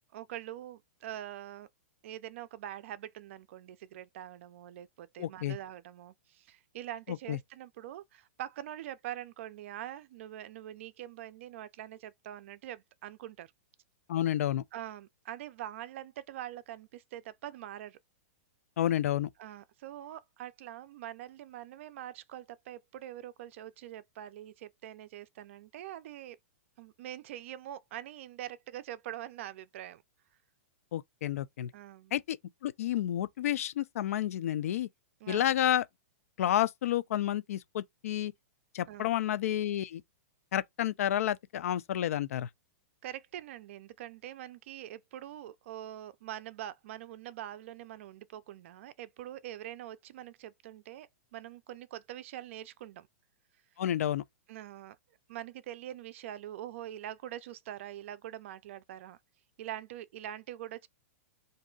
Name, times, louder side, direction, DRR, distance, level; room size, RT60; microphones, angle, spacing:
voice 1, 0.1-1.7 2.0-13.5 14.7-18.0 19.4-26.4 26.8-30.0 31.7-32.2 35.2-35.6 38.9-39.1 43.0-53.1 54.5-55.0 55.3-59.2 59.6-60.9, right 12 dB, 55° right, 0.4 m, -44 dB
voice 2, 5.2-5.6 7.3-7.4 14.1-14.6 18.8-19.3 30.9-31.7 32.1-32.4 32.6-34.9 35.3-35.8 36.4-38.3 38.7-40.0 40.5-42.5 53.8-54.2, left 12 dB, 70° left, 0.4 m, -30 dB
2.6 x 2.3 x 3.7 m
hypercardioid pair, 150°, 8 cm